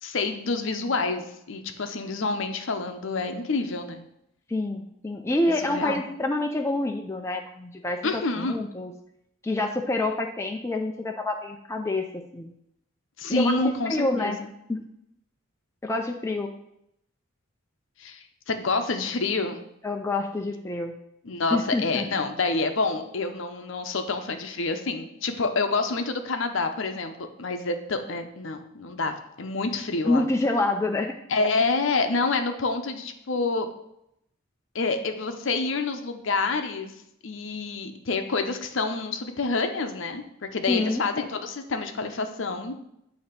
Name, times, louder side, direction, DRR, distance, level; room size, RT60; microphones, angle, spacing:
voice 1, 0.0-4.1 5.6-6.0 8.0-8.6 13.2-14.3 18.0-19.6 21.2-30.2 31.3-33.7 34.7-36.9 37.2-42.8, left 3 dB, 60° left, 6 dB, 0.7 m, -28 dB
voice 2, 4.5-8.9 9.4-12.5 13.3-14.4 14.7-14.8 15.8-16.5 19.8-20.9 21.5-22.2 30.0-31.1 40.7-41.0, left 2 dB, 15° left, 2 dB, 0.4 m, -27 dB
8.5 x 2.8 x 5.7 m, 0.79 s
head